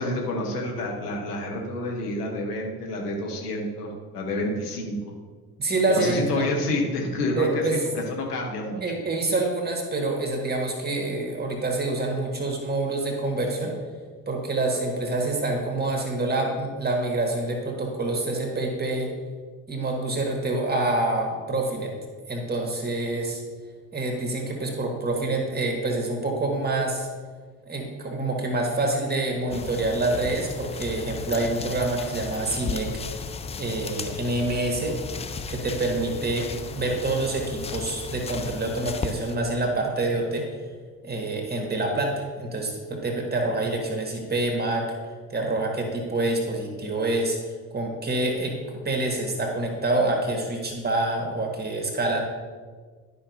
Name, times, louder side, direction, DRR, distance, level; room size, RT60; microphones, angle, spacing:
voice 1, 0.0-5.1 5.9-8.8, left 1 dB, 75° left, 0 dB, 1.3 m, -29 dB
voice 2, 5.6-6.4 7.3-7.8 8.8-13.8 14.3-19.1 19.7-21.9 22.3-23.4 23.9-27.1 27.7-32.9 33.5-35.0 35.5-40.5 41.0-44.9 45.3-47.4 47.7-48.6 48.8-52.2, right 2 dB, 20° right, 1 dB, 1.8 m, -26 dB
sound 1, 29.5-39.3, left 5 dB, 15° left, 0.4 m, -35 dB
12.0 x 5.7 x 2.7 m, 1.5 s
figure-of-eight pair, 50°, 47 cm